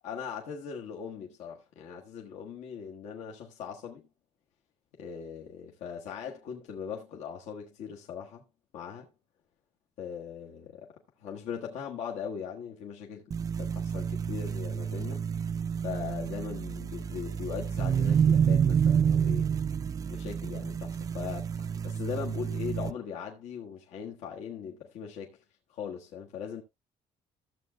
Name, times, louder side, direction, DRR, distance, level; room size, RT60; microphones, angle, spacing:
voice 1, 0.0-4.1 5.0-8.4 8.7-9.1 10.0-10.9 11.2-13.3 13.6-15.2 15.8-19.5 20.1-25.4 25.7-26.6, left 7 dB, 85° left, 1.4 m, -40 dB
sound 1, 13.3-22.9, right 7 dB, 30° right, 0.4 m, -29 dB
14.0 x 7.8 x 2.3 m
cardioid pair, 155°, 11 cm